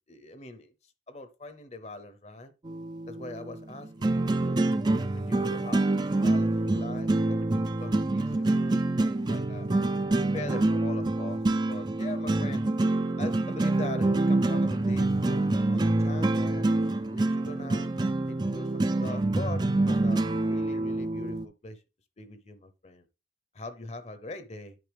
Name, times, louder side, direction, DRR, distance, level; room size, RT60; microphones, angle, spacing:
voice 1, 0.1-0.7 1.1-2.5 3.1-4.6 5.1-9.7 10.3-11.4 11.7-12.7 13.2-17.9 18.3-20.2 20.5-21.8 22.2-23.1 23.5-24.8, left 2 dB, 35° left, 0.8 m, -42 dB
sound 1, 2.6-21.4, right 2 dB, 25° right, 0.4 m, -26 dB
9.4 x 5.5 x 3.4 m
head